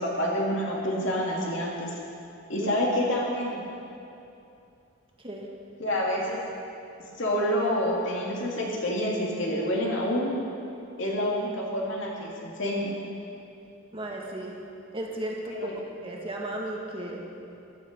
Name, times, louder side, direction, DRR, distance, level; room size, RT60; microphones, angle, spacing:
voice 1, 0.0-2.0 2.5-3.7 5.8-6.4 7.2-10.3 11.0-12.9 15.5-15.8, equal, 70° left, -3 dB, 2.8 m, -28 dB
voice 2, 13.9-14.6 14.9-17.2, right 1 dB, 25° right, -1 dB, 1.6 m, -35 dB
14.0 x 12.5 x 5.4 m, 2.7 s
head